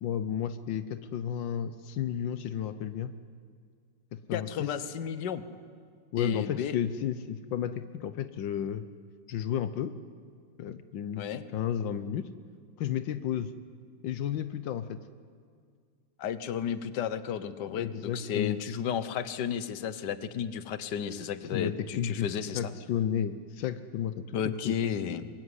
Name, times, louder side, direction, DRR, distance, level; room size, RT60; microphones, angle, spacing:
voice 1, 0.0-3.1 4.1-4.7 6.1-8.9 9.3-9.9 10.6-12.3 12.8-13.5 14.0-15.0 17.7-18.6 21.5-22.3 22.5-24.7, left 9 dB, 85° left, 12 dB, 1.6 m, -32 dB
voice 2, 4.3-5.4 6.2-6.8 11.2-11.5 16.2-22.7 24.3-25.3, left 8 dB, 70° left, 13 dB, 1.7 m, -33 dB
24.5 x 22.5 x 9.8 m, 2.1 s
omnidirectional pair, 2.0 m